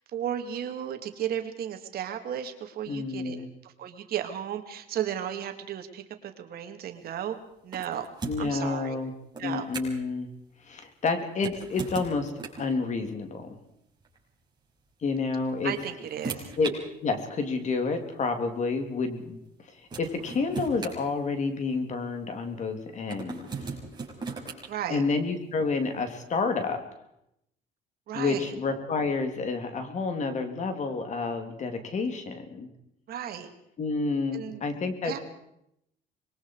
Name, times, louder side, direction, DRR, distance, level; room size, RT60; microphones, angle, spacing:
voice 1, 0.1-7.4 7.6-8.1 8.4-9.0 9.4-9.7 15.6-16.5 24.7-25.0 28.1-28.5 33.1-33.5 34.3-34.6 35.0-35.2, right 10 dB, 65° right, 7 dB, 2.3 m, -34 dB
voice 2, 2.9-3.5 8.2-9.1 9.4-10.3 10.6-13.5 15.0-15.7 16.6-16.7 17.0-19.4 19.7-23.5 24.9-26.8 28.1-32.7 33.8-35.2, left 4 dB, 45° left, 6 dB, 3.2 m, -29 dB
sound 1, 7.7-8.6 9.3-10.1 11.3-12.7 14.0-14.2 15.3-16.8 17.7-17.8 19.5-19.6 19.9-21.7 23.1-24.7, right 4 dB, 25° right, 6.2 m, -38 dB
25.5 x 22.0 x 4.8 m, 0.78 s
cardioid pair, 110°, 17 cm